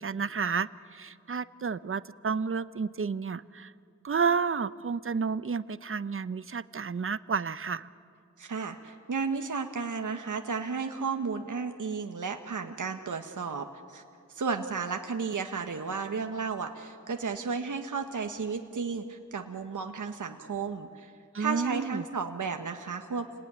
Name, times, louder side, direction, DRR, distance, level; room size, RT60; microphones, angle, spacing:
voice 1, 0.0-3.7 4.0-7.9 21.3-22.0, right 5 dB, 45° right, 15 dB, 0.8 m, -31 dB
voice 2, 8.4-14.0 14.3-21.1 21.4-23.4, right 5 dB, 80° right, 5 dB, 1.4 m, -33 dB
29.5 x 19.5 x 9.7 m, 2.4 s
wide cardioid pair, 70°, 30 cm